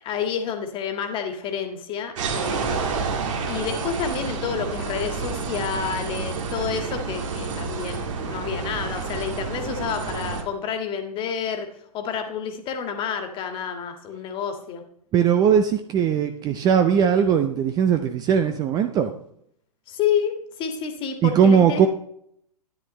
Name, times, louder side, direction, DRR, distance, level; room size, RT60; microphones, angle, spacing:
voice 1, 0.0-2.8 3.4-14.8 19.9-21.9, left 7 dB, 25° left, 5 dB, 1.9 m, -29 dB
sound 1, 2.2-10.4, right 5 dB, 50° right, 2.3 m, -29 dB
voice 2, 15.1-19.1 21.2-21.9, right 7 dB, 20° right, 8 dB, 0.6 m, -19 dB
13.0 x 10.5 x 3.2 m, 0.70 s
figure-of-eight pair, 120°, 20 cm